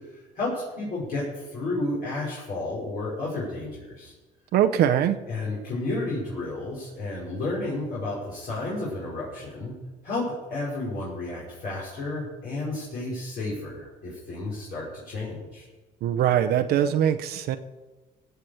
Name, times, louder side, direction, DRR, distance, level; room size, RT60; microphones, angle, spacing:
voice 1, 0.1-4.1 5.3-9.7 10.0-10.2 10.5-15.6, left 2 dB, 65° left, -7 dB, 5.1 m, -32 dB
voice 2, 4.5-5.2 16.0-17.6, right 10 dB, 70° right, 9 dB, 0.7 m, -22 dB
16.0 x 5.9 x 7.9 m, 1.2 s
cardioid pair, 110°, 17 cm